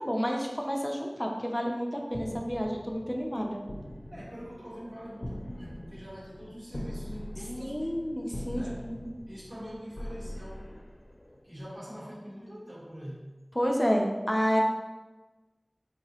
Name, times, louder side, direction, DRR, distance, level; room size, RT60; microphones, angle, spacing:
voice 1, 0.0-3.6 7.6-9.1 13.5-14.6, equal, 20° left, 0 dB, 0.5 m, -30 dB
sound 1, 2.1-11.6, left 1 dB, 70° left, 0.5 m, -42 dB
voice 2, 4.1-7.9 8.5-8.9 9.3-10.8 11.4-13.3, equal, 80° right, -8 dB, 1.5 m, -43 dB
4.7 x 2.8 x 2.9 m, 1.2 s
wide cardioid pair, 40°, 0 cm